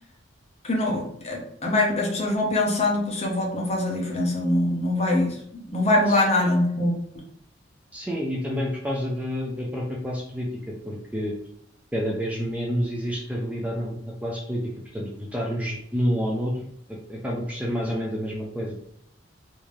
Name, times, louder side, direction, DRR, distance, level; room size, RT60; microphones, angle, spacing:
voice 1, 0.6-7.2, left 1 dB, 30° left, -1 dB, 0.8 m, -24 dB
voice 2, 6.1-6.5 7.9-11.3 11.9-14.6 14.9-18.8, equal, 5° right, -2 dB, 0.5 m, -29 dB
3.5 x 2.7 x 3.1 m, 0.71 s
head